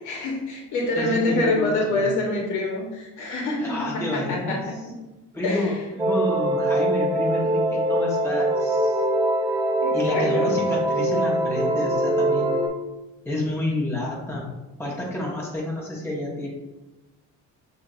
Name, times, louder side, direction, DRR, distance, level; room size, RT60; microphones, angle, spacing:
voice 1, 0.1-4.7 5.4-5.8 9.8-10.5, left 2 dB, 60° left, -1 dB, 1.3 m, -26 dB
voice 2, 1.0-2.1 3.6-4.7 5.3-9.0 9.5-9.6 9.9-12.6 13.2-14.5 14.8-16.5, left 1 dB, 5° left, -5 dB, 1.4 m, -29 dB
sound 1, 6.0-12.7, right 1 dB, 15° right, 0.6 m, -23 dB
6.9 x 2.8 x 2.6 m, 1.1 s
cardioid pair, 105°, 33 cm